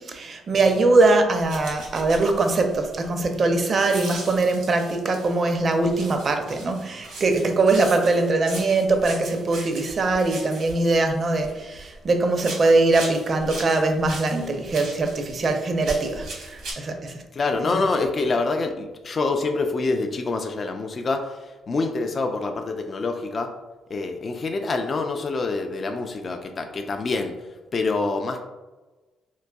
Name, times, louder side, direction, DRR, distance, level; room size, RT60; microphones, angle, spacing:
voice 1, 0.0-17.1, right 3 dB, 45° right, 5 dB, 0.5 m, -22 dB
sound 1, 1.4-5.4 5.8-12.0 12.3-16.7, right 2 dB, 85° right, 1.0 m, -39 dB
voice 2, 17.3-21.4 21.7-23.5 23.9-27.3 27.7-28.4, left 3 dB, 40° left, 4 dB, 0.3 m, -26 dB
3.8 x 2.6 x 2.2 m, 1.2 s
cardioid pair, 90°, 0 cm